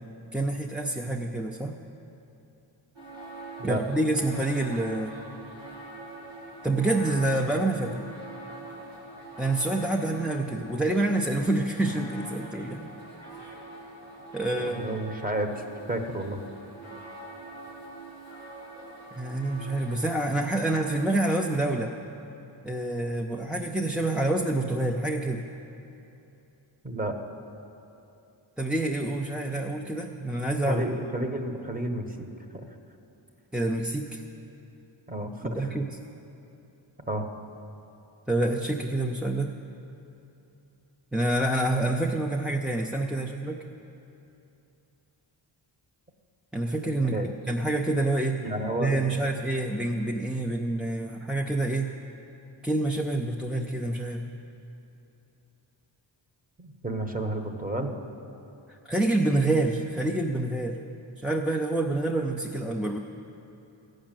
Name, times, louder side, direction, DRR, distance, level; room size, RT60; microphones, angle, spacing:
voice 1, 0.3-1.7 3.6-5.2 6.6-8.0 9.4-12.9 13.5-13.6 14.3-15.0 19.2-21.9 22.6-25.4 28.6-30.8 33.5-34.2 35.4-36.0 38.3-39.6 41.1-43.6 46.5-47.2 47.5-48.4 48.8-51.9 52.6-54.2 58.9-60.8 61.2-63.0, right 2 dB, ahead, 0 dB, 0.6 m, -27 dB
sound 1, 3.0-21.7, right 2 dB, 85° right, 2.3 m, -44 dB
voice 2, 14.5-16.4 26.8-27.2 30.7-32.3 35.1-35.8 37.1-37.3 47.1-47.3 48.4-48.9 56.6-58.0, right 1 dB, 15° right, 5 dB, 1.2 m, -31 dB
14.0 x 6.5 x 9.0 m, 2.9 s
cardioid pair, 60°, 48 cm